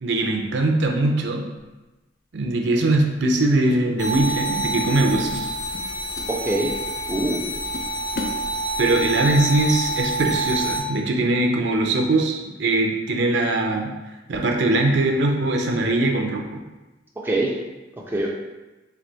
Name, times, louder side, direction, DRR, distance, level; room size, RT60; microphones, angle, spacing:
voice 1, 0.0-1.4 2.3-5.5 8.8-13.9 14.3-16.6, right 2 dB, 65° right, 2 dB, 0.5 m, -21 dB
sound 1, 1.6-1.8 2.9-3.9 4.1-4.4 4.9-5.1 5.3-6.9 7.3-7.4 7.7-9.1, left 3 dB, 50° left, 0.5 m, -36 dB
sound 2, 4.0-10.8, right 1 dB, 75° left, 1.5 m, -27 dB
voice 2, 6.3-6.8 7.1-7.5 17.2-17.6 18.1-18.3, right 2 dB, 10° right, -2 dB, 0.4 m, -24 dB
3.4 x 3.3 x 3.9 m, 1.1 s
head